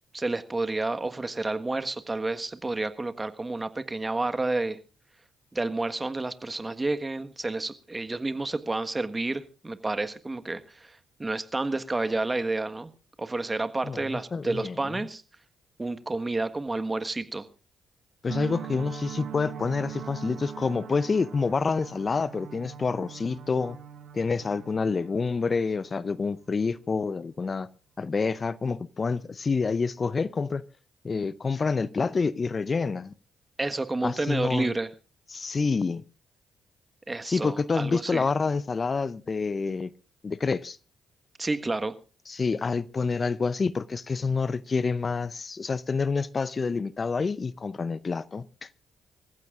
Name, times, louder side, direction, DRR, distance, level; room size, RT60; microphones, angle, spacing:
voice 1, 0.1-4.8 5.5-12.9 13.2-15.2 15.8-17.4 33.6-34.9 37.1-38.2 41.4-41.9, right 2 dB, 25° right, 1.5 m, -30 dB
voice 2, 13.8-14.9 18.2-23.8 24.1-27.7 28.0-30.6 31.0-33.1 34.0-34.7 35.3-36.0 37.3-39.9 40.2-40.8 42.3-48.7, left 4 dB, 40° left, 0.6 m, -28 dB
sound 1, 18.3-26.7, right 9 dB, 65° right, 1.8 m, -42 dB
25.5 x 14.5 x 2.5 m
hypercardioid pair, 45°, 0 cm